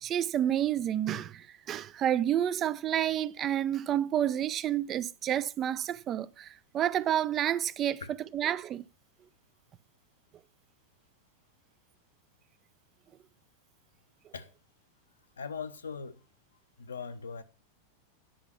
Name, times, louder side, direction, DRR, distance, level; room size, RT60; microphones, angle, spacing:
voice 1, 0.0-8.0 8.3-8.8, right 11 dB, 30° right, 0.5 m, -29 dB
voice 2, 15.4-16.2 16.8-17.4, left 5 dB, 70° left, 0.9 m, -40 dB
10.0 x 5.8 x 5.8 m
figure-of-eight pair, 90°, 0 cm